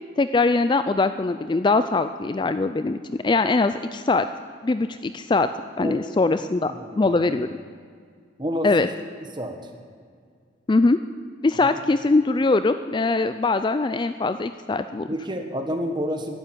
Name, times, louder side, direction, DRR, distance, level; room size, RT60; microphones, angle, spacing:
voice 1, 0.2-4.3 4.6-5.5 5.8-7.5 8.6-8.9 10.7-11.0 11.4-15.1, left 3 dB, 25° left, 11 dB, 0.3 m, -22 dB
voice 2, 6.7-7.2 8.4-8.9 9.3-9.6 11.5-11.8 15.1-16.4, equal, 25° right, 5 dB, 1.4 m, -30 dB
12.5 x 11.0 x 9.0 m, 2.1 s
head